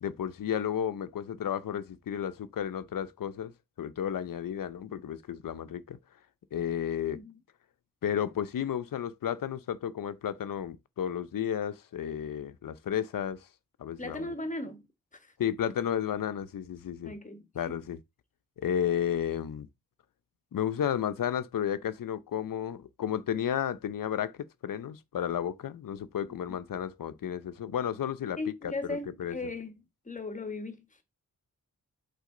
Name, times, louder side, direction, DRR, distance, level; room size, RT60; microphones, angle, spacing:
voice 1, 0.0-6.0 6.5-7.2 8.0-13.5 13.8-14.3 15.4-17.1 17.5-18.0 18.6-19.7 20.5-24.3 24.6-28.4 28.6-29.4, left 9 dB, 80° left, 0.8 m, -32 dB
voice 2, 14.0-14.9 15.1-15.3 17.0-17.5 28.4-31.0, left 2 dB, 25° left, 1.3 m, -37 dB
8.4 x 4.1 x 3.8 m
wide cardioid pair, 140°, 33 cm